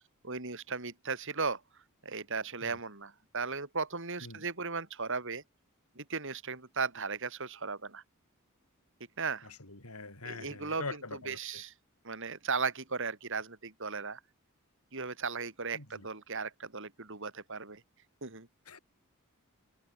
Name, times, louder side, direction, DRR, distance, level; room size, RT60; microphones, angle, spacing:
voice 1, 0.2-1.6 2.0-5.4 6.0-8.0 9.2-9.5 10.2-11.0 11.3-11.7 12.0-14.2 14.9-17.8 18.2-18.5, right 4 dB, 60° right, 3.7 m, -36 dB
voice 2, 9.4-11.6 15.7-16.1 18.7-18.8, left 3 dB, 90° left, 7.7 m, -44 dB
head